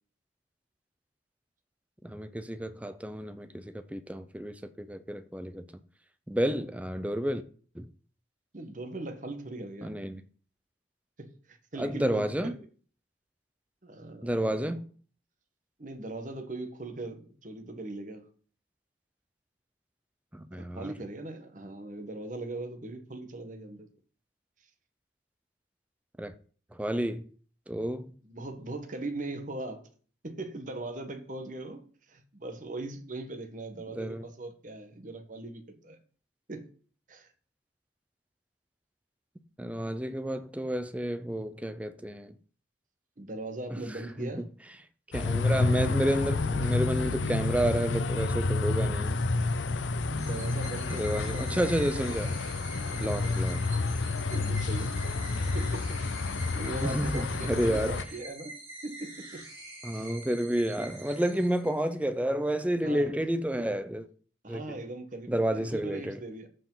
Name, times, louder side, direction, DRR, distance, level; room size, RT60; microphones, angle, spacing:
voice 1, 2.0-5.7 6.3-7.4 7.7-7.9 9.8-10.2 11.8-12.6 14.2-14.8 20.3-20.9 26.2-26.3 26.7-27.3 27.7-28.1 33.9-34.2 39.6-42.3 43.7-44.5 45.1-49.2 50.9-52.4 53.0-53.6 56.8-58.0 59.8-64.1 64.5-64.8 65.3-66.2, right 1 dB, 5° right, 0.6 m, -30 dB
voice 2, 8.5-9.9 11.2-12.5 13.8-14.8 15.8-18.3 20.5-23.9 28.3-29.9 30.2-31.8 32.1-36.0 36.5-36.7 37.1-37.3 43.2-44.4 50.1-51.8 52.9-53.4 54.3-55.0 55.5-56.0 56.2-58.5 58.8-59.5 59.9-60.1 62.8-63.2 64.4-66.5, right 2 dB, 40° right, 1.3 m, -40 dB
sound 1, 45.1-58.0, left 3 dB, 80° left, 0.6 m, -29 dB
sound 2, 50.2-62.1, right 1 dB, 25° right, 4.7 m, -46 dB
14.0 x 4.8 x 3.9 m
head